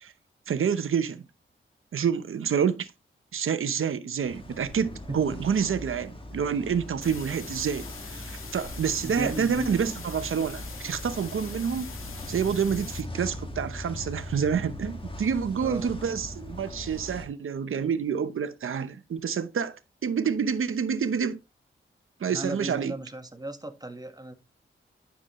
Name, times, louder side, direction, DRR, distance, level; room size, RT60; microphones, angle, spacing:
voice 1, 0.5-1.2 1.9-2.9 3.3-11.9 12.3-21.4 22.2-22.9, right 7 dB, 85° right, 0.9 m, -28 dB
sound 1, 4.2-17.3, left 1 dB, 25° left, 2.0 m, -40 dB
voice 2, 5.1-5.4 9.0-9.9 15.6-15.9 22.3-24.3, right 1 dB, 20° right, 1.6 m, -36 dB
sound 2, 7.0-13.0, left 5 dB, 85° left, 2.0 m, -43 dB
10.0 x 7.0 x 3.1 m
wide cardioid pair, 80°, 21 cm